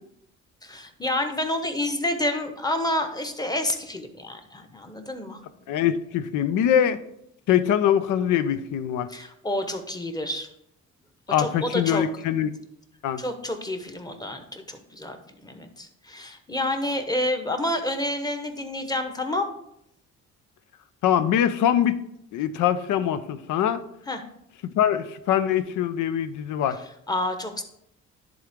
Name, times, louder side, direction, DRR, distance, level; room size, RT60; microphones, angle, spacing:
voice 1, 0.6-5.4 9.1-10.5 11.4-12.1 13.2-19.5 24.1-24.2 27.1-27.6, left 1 dB, 15° left, 6 dB, 0.9 m, -29 dB
voice 2, 5.7-7.0 7.5-9.1 11.3-12.5 13.0-13.2 21.0-22.0 22.3-23.8 24.6-26.8, left 10 dB, 80° left, 12 dB, 0.6 m, -23 dB
10.5 x 3.8 x 3.6 m, 0.77 s
cardioid pair, 90°, 30 cm